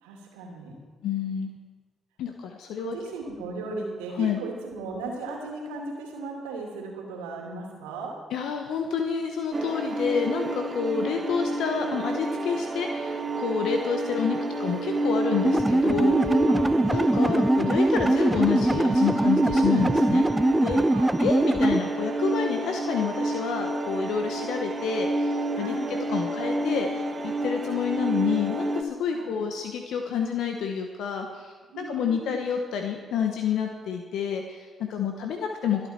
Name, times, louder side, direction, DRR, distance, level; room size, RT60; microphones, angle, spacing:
voice 1, 0.0-0.8 2.8-8.1 10.9-11.2 16.5-16.8 19.6-20.1 20.6-21.5 25.6-25.9 29.1-29.4 31.7-32.4, right 3 dB, 85° right, 0 dB, 2.7 m, -37 dB
voice 2, 1.0-1.5 2.2-3.0 4.1-4.4 8.3-16.5 16.9-20.2 20.6-35.9, left 6 dB, 70° left, 4 dB, 1.1 m, -29 dB
sound 1, 9.5-28.8, right 1 dB, 35° right, 1.4 m, -30 dB
sound 2, 15.4-21.8, right 1 dB, 15° right, 0.3 m, -22 dB
26.5 x 8.9 x 4.4 m, 1.5 s
hypercardioid pair, 45°, 0 cm